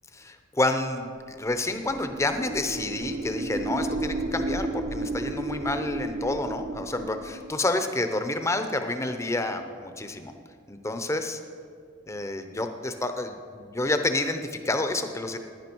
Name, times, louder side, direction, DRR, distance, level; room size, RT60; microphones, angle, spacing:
voice 1, 0.2-1.1 1.4-10.3 10.7-11.4 12.1-15.4, left 2 dB, 15° left, 7 dB, 0.7 m, -29 dB
sound 1, 1.5-7.6, right 1 dB, 50° right, 0.7 m, -33 dB
15.0 x 10.0 x 4.6 m, 2.2 s
head